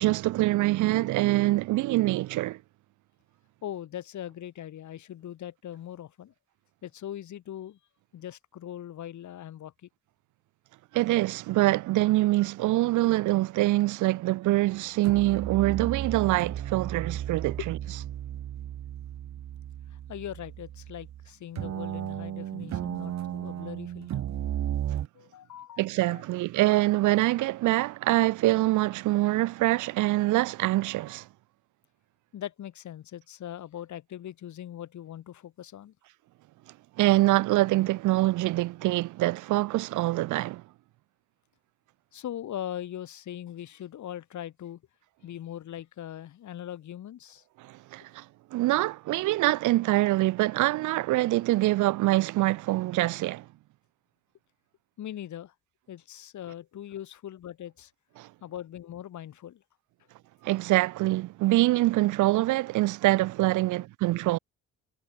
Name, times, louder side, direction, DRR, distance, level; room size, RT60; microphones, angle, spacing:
voice 1, 0.0-2.6 10.9-17.7 25.8-31.3 37.0-40.6 47.6-48.2 48.5-53.5 58.2-58.3 60.4-64.4, right 18 dB, 80° right, 0.6 m, -25 dB
voice 2, 3.6-6.3 6.8-7.8 8.1-9.9 17.4-17.7 19.9-24.3 25.1-26.2 32.3-35.9 42.1-44.8 45.2-47.4 55.0-55.5 55.9-57.9 58.4-59.6, left 11 dB, 70° left, 6.3 m, -40 dB
sound 1, 14.5-14.8 15.0-21.3 21.6-25.1, right 11 dB, 65° right, 1.6 m, -34 dB
cardioid pair, 90°, 30 cm